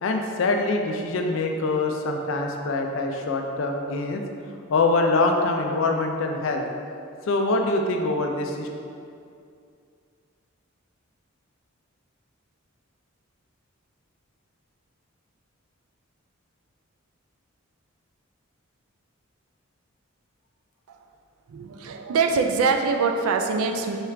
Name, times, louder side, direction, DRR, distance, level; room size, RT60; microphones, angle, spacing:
voice 1, 0.0-4.2 4.7-6.6 7.3-8.7, left 3 dB, 65° left, 3 dB, 0.4 m, -24 dB
voice 2, 21.5-24.0, right 4 dB, 85° right, 4 dB, 0.3 m, -23 dB
4.4 x 2.4 x 3.3 m, 2.4 s
head